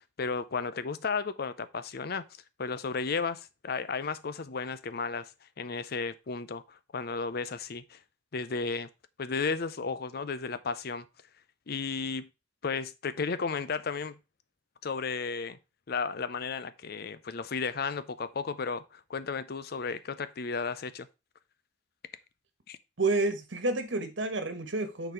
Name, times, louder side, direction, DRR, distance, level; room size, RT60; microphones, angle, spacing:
voice 1, 0.2-2.2 2.6-5.3 5.6-8.0 8.3-8.9 9.2-11.1 11.7-12.3 12.6-14.2 14.8-15.6 15.9-21.1 22.7-22.8, left 5 dB, 55° left, 0.6 m, -33 dB
voice 2, 23.0-25.1, right 2 dB, 80° right, 1.4 m, -29 dB
6.8 x 4.1 x 4.8 m
head